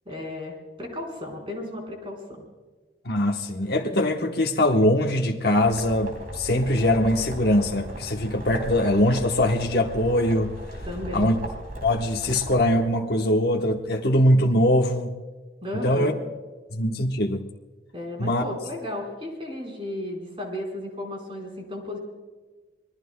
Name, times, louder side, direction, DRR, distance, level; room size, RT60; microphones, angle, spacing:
voice 1, 0.1-2.4 10.8-11.4 15.6-16.2 17.9-22.0, left 1 dB, 30° right, 1 dB, 4.4 m, -34 dB
voice 2, 3.0-10.5 11.1-11.3 11.8-15.1 15.8-16.1 16.7-17.4 18.2-18.4, left 1 dB, 55° left, 1 dB, 1.1 m, -22 dB
sound 1, 5.6-12.7, equal, 50° right, 4.1 m, -37 dB
26.0 x 21.0 x 2.2 m, 1.3 s
head